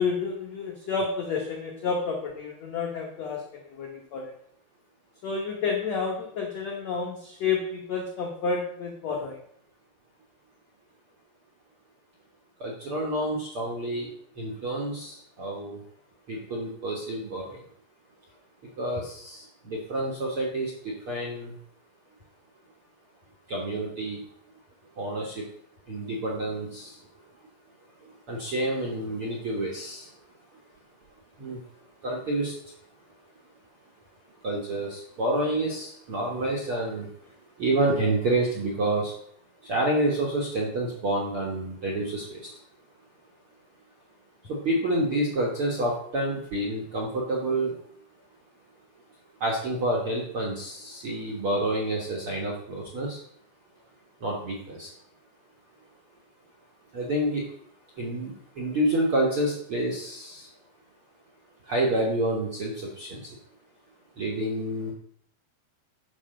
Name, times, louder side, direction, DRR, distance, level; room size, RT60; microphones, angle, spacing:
voice 1, 0.0-4.3 5.2-9.4, left 5 dB, 90° left, 0 dB, 1.4 m, -30 dB
voice 2, 12.6-14.1 14.4-15.8 16.3-17.6 18.8-21.5 23.5-24.2 25.0-25.4 25.9-27.0 28.3-30.1 31.4-31.6 32.0-32.6 34.4-37.1 37.6-39.1 39.6-42.4 44.5-47.8 49.4-53.2 54.2-54.9 56.9-57.5 58.0-60.5 61.7-63.3 64.2-64.9, right 1 dB, 65° right, -2 dB, 1.3 m, -28 dB
9.7 x 5.1 x 6.7 m, 0.65 s
omnidirectional pair, 5.0 m